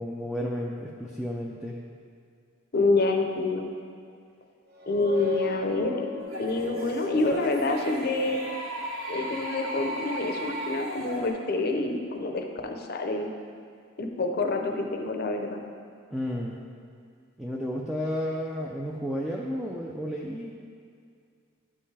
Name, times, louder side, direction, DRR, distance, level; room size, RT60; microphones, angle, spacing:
voice 1, 0.0-1.8 16.1-16.6 17.4-20.5, equal, 5° right, -2 dB, 0.4 m, -32 dB
voice 2, 2.7-3.7 4.9-6.0 6.4-8.4 9.1-13.3 14.0-15.6, left 2 dB, 45° left, 4 dB, 0.6 m, -27 dB
sound 1, 4.7-8.3, left 3 dB, 50° right, 1.1 m, -37 dB
sound 2, 6.2-11.3, right 1 dB, 80° right, 1.6 m, -36 dB
10.5 x 5.5 x 3.3 m, 2.3 s
head